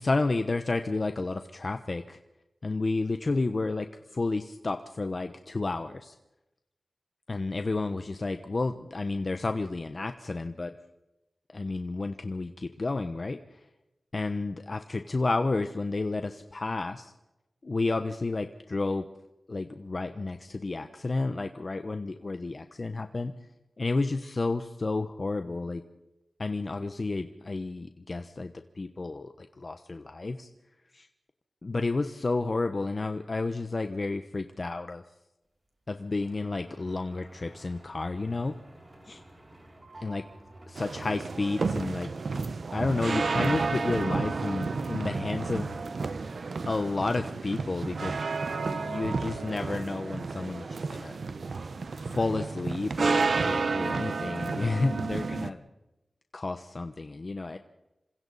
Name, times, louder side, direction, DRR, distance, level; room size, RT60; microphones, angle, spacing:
voice 1, 0.0-2.2 2.6-6.2 7.3-10.7 11.5-13.6 14.1-17.1 17.6-19.1 19.5-23.3 23.8-25.8 26.4-30.5 30.9-31.1 31.6-35.0 35.9-38.5 39.1-39.2 40.0-40.2 40.7-42.1 42.7-45.8 46.7-48.2 48.4-51.2 52.1-55.6 56.3-57.6, left 3 dB, 50° left, 8 dB, 1.1 m, -31 dB
sound 1, 35.9-47.4 47.7-48.3 48.5-49.8, right 1 dB, 35° right, 6.2 m, -53 dB
sound 2, 40.8-55.5, right 4 dB, 75° right, 1.0 m, -31 dB
28.0 x 25.5 x 4.2 m, 0.95 s
wide cardioid pair, 75°, 0 cm